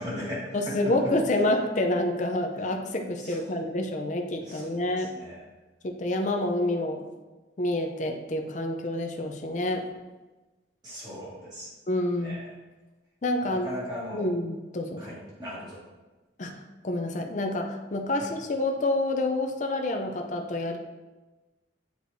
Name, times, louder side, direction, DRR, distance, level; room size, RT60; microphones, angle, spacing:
voice 1, 0.0-1.0 3.2-3.6 4.4-5.5 10.8-11.7 12.1-12.5 13.4-14.3 15.0-15.8 18.2-18.3, equal, 20° right, -8 dB, 2.0 m, -38 dB
voice 2, 0.5-5.1 5.8-7.0 7.6-9.8 11.9-12.4 13.2-13.7 14.1-15.1 16.4-16.5 16.8-20.8, left 1 dB, 40° left, 4 dB, 0.5 m, -28 dB
8.0 x 4.7 x 2.7 m, 1.2 s
head